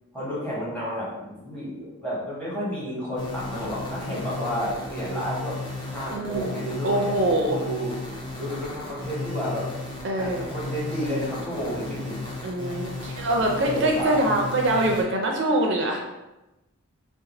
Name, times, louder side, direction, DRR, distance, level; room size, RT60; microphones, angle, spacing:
voice 1, 0.1-5.6 5.9-7.2 7.4-7.9 8.4-9.7 10.2-12.2 13.4-14.3 14.7-14.9, equal, 5° left, -8 dB, 1.0 m, -31 dB
sound 1, 3.2-15.0, left 2 dB, 20° left, 0.5 m, -35 dB
voice 2, 6.1-6.6 6.8-7.6 10.0-10.5 12.4-16.0, right 1 dB, 55° right, 1 dB, 0.4 m, -24 dB
2.5 x 2.3 x 4.0 m, 1.0 s
head